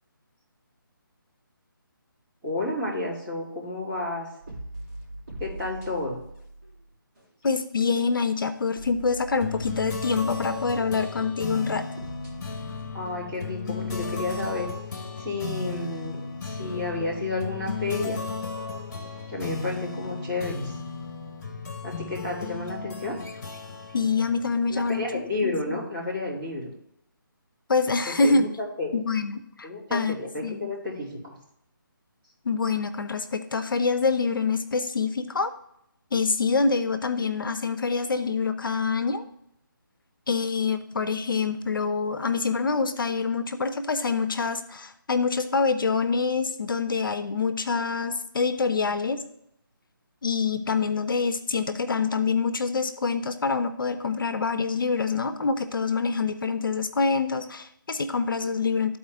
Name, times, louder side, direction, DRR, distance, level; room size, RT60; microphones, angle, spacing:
voice 1, 2.4-4.3 5.4-6.2 12.9-14.7 15.2-18.2 19.3-20.8 21.8-23.2 24.7-26.7 28.1-28.9 29.6-31.4, left 2 dB, 15° right, -8 dB, 2.8 m, -31 dB
sound 1, 4.4-6.8 7.2-7.6 7.9-8.1 8.5-11.1 11.4-14.8, right 2 dB, 40° right, 2.7 m, -41 dB
voice 2, 7.4-11.8 23.9-25.8 27.7-28.5 28.9-30.1 30.4-30.7 32.4-35.5 36.1-39.2 40.3-49.2 50.2-59.0, left 4 dB, 70° left, 11 dB, 0.7 m, -26 dB
sound 2, 9.4-25.3, left 4 dB, 50° left, 1.2 m, -35 dB
12.5 x 4.3 x 3.3 m, 0.77 s
figure-of-eight pair, 160°, 12 cm